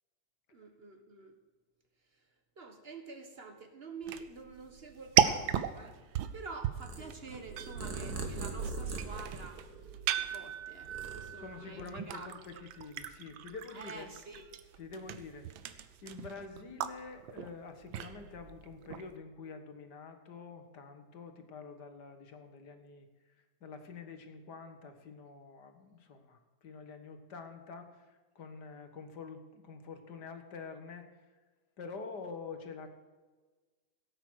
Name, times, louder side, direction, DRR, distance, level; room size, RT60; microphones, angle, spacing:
voice 1, 0.5-1.3 2.1-2.2 2.6-6.0 6.3-12.7 13.7-14.4, right 4 dB, 35° right, 5 dB, 1.5 m, -48 dB
sound 1, 4.0-19.2, right 10 dB, 85° right, 1.5 m, -36 dB
Purr, 6.8-10.3 10.7-11.8, right 4 dB, 55° right, 1.9 m, -41 dB
voice 2, 11.4-14.1 14.8-15.5 16.0-23.1 23.6-31.1 31.8-32.9, left 4 dB, 60° left, 7 dB, 1.9 m, -47 dB
16.5 x 9.0 x 6.4 m, 1.3 s
omnidirectional pair, 2.1 m